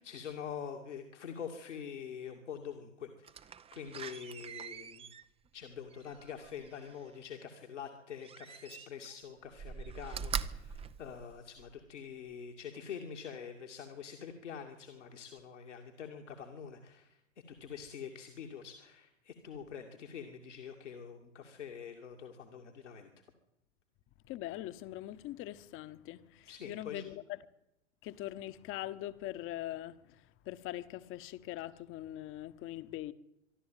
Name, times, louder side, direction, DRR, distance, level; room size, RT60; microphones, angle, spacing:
voice 1, 0.0-5.1 5.5-17.2 17.6-23.1 26.5-27.1, left 7 dB, 75° left, 2.4 m, -45 dB
Slam, 3.2-7.1 8.2-9.1 9.5-11.8 12.3-12.4, right 7 dB, 15° right, 0.7 m, -43 dB
voice 2, 24.3-27.2 28.0-33.1, left 14 dB, 35° left, 1.3 m, -42 dB
24.0 x 12.0 x 9.2 m
figure-of-eight pair, 95°, 36 cm